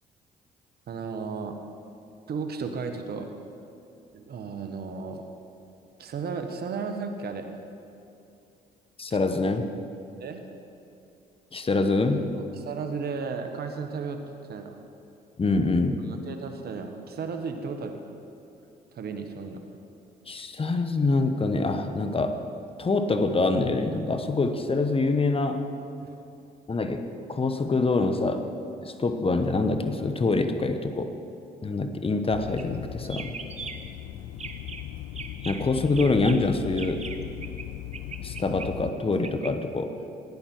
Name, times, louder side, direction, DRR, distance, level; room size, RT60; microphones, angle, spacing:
voice 1, 0.9-1.6 2.3-3.3 4.1-5.3 6.0-7.5 10.2-10.5 12.6-14.2 14.5-14.8 16.1-18.0 18.9-19.6 26.0-26.1, right 5 dB, 60° right, 6 dB, 1.3 m, -34 dB
voice 2, 9.0-9.7 11.5-12.3 15.4-16.0 20.3-22.5 22.8-25.6 26.7-28.5 28.8-31.1 31.6-33.3 35.4-37.0 38.2-39.9, left 3 dB, 30° left, 8 dB, 1.1 m, -25 dB
sound 1, 32.3-38.9, left 14 dB, 90° left, 0.4 m, -38 dB
sound 2, 32.5-32.8 33.0-34.0 34.3-34.8 35.2-37.7 37.9-39.5, right 5 dB, 40° right, 1.1 m, -40 dB
15.5 x 11.0 x 4.6 m, 2.6 s
supercardioid pair, 65°, 18 cm